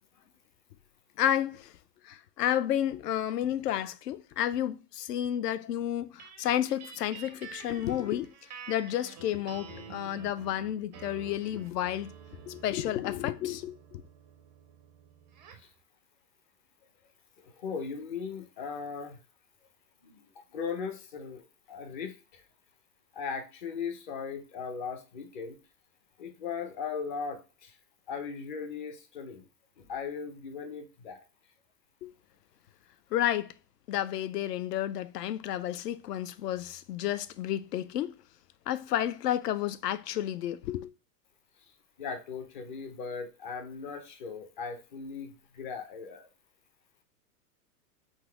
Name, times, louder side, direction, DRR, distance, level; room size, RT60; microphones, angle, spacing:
voice 1, 1.2-1.7 2.0-8.3 8.7-12.1 12.5-14.0 32.0-32.1 33.1-33.5 33.9-38.1 38.7-40.9, left 11 dB, 75° left, 0.6 m, -31 dB
sound 1, 6.2-15.7, right 7 dB, 30° right, 0.4 m, -49 dB
voice 2, 17.4-19.2 20.5-22.4 23.1-25.6 26.2-27.7 28.1-29.4 29.8-31.2 42.0-46.3, left 6 dB, 30° left, 0.5 m, -38 dB
4.0 x 2.7 x 4.7 m
supercardioid pair, 155°, 48 cm